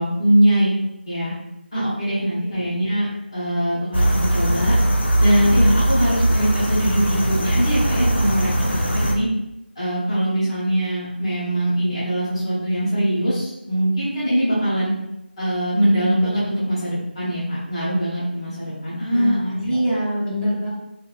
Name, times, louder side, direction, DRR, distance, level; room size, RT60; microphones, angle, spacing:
voice 1, 0.0-1.3 1.7-4.8 5.2-9.3 9.8-14.9 15.4-19.8, equal, 30° left, -10 dB, 0.9 m, -22 dB
sound 1, 3.9-9.2, right 1 dB, 80° left, 0.5 m, -20 dB
voice 2, 19.1-20.7, equal, 25° right, -11 dB, 0.9 m, -24 dB
2.5 x 2.1 x 2.4 m, 0.87 s
figure-of-eight pair, 175°, 6 cm